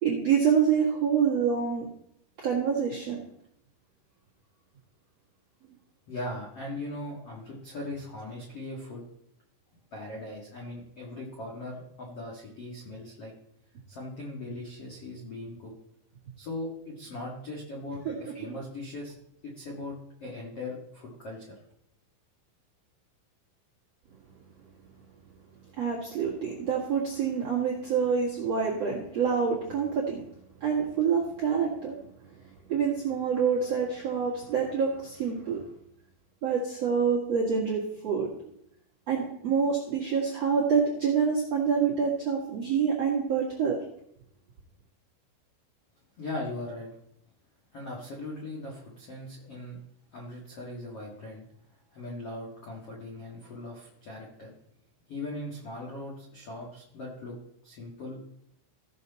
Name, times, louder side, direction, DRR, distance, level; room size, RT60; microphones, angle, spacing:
voice 1, 0.0-1.9 2.4-3.2 18.1-18.5 25.8-30.2 30.6-32.0 32.7-35.6 36.4-38.3 39.1-43.8, right 6 dB, 60° right, -5 dB, 1.6 m, -27 dB
voice 2, 6.1-9.0 9.9-13.3 13.9-15.7 16.4-19.1 19.4-21.6 46.2-46.9 47.7-49.8 50.1-51.4 51.9-54.5 55.1-57.3 57.6-58.2, left 2 dB, 60° left, -3 dB, 1.5 m, -39 dB
16.5 x 6.8 x 4.1 m, 0.74 s
omnidirectional pair, 5.9 m